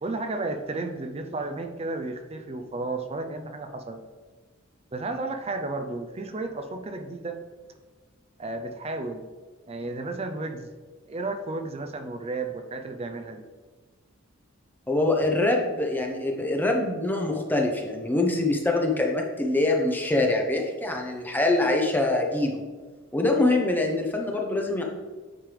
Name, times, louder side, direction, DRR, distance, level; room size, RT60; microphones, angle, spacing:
voice 1, 0.0-4.0 4.9-7.4 8.4-9.3 9.7-10.7 11.1-13.5 15.2-15.3, right 2 dB, 30° right, 6 dB, 0.5 m, -33 dB
voice 2, 14.9-22.6 23.1-24.8, left 2 dB, 10° left, 1 dB, 0.7 m, -24 dB
9.0 x 5.3 x 3.3 m, 1.4 s
head